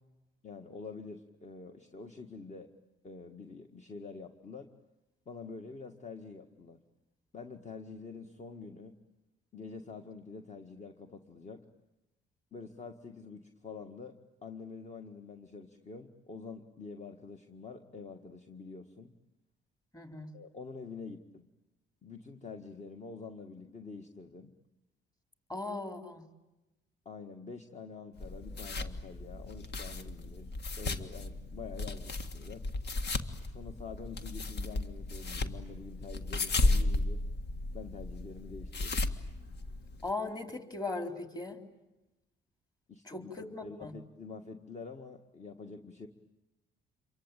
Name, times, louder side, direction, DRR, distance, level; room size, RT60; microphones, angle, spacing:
voice 1, 0.4-2.7 3.0-4.7 5.3-6.8 7.3-9.0 9.5-11.6 12.5-14.2 14.4-19.1 20.3-21.5 22.0-24.5 27.1-32.7 33.5-37.2 37.7-39.0 42.9-46.1, left 4 dB, 35° left, 5 dB, 1.8 m, -46 dB
voice 2, 19.9-20.3 25.5-26.2 40.0-41.6 43.1-43.9, left 3 dB, 20° left, 6 dB, 3.8 m, -38 dB
sound 1, 28.2-40.1, left 2 dB, 60° left, 1.9 m, -34 dB
28.0 x 23.5 x 9.1 m, 1.0 s
cardioid pair, 90°, 20 cm